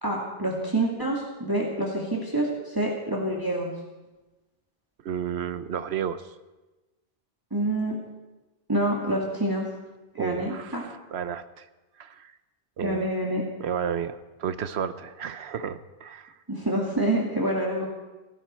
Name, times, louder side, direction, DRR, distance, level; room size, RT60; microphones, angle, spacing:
voice 1, 0.0-3.7 7.5-8.0 8.7-9.7 10.1-10.8 12.8-13.4 16.5-17.9, right 1 dB, 20° right, -3 dB, 2.2 m, -27 dB
voice 2, 5.0-6.2 10.2-11.6 12.0-12.3 12.8-13.1 13.6-16.3, right 8 dB, 85° right, 12 dB, 1.0 m, -32 dB
29.0 x 11.0 x 4.3 m, 1.1 s
omnidirectional pair, 1.1 m